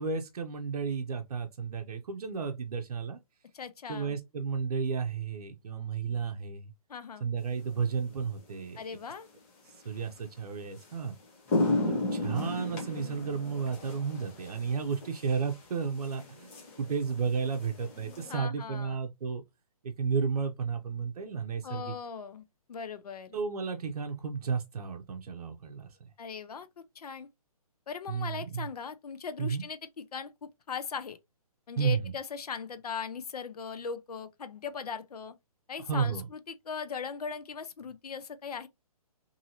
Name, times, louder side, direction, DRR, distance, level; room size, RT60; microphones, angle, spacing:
voice 1, 0.0-3.2 3.9-6.7 7.2-8.8 9.8-11.2 11.8-16.5 16.8-19.4 19.8-21.9 23.3-26.0 28.1-28.7 29.4-29.6 31.8-32.1 35.9-36.3, right 5 dB, 75° right, 0.6 m, -32 dB
voice 2, 3.5-4.2 6.9-7.3 8.8-9.3 18.3-19.0 21.6-23.4 26.2-27.3 27.9-31.2 31.7-35.4 35.7-38.7, left 6 dB, 80° left, 0.6 m, -39 dB
sound 1, 7.8-8.0 10.2-10.3 10.8-10.9 11.2-18.4, left 2 dB, 20° left, 0.7 m, -34 dB
2.7 x 2.7 x 2.7 m
hypercardioid pair, 165°, 19 cm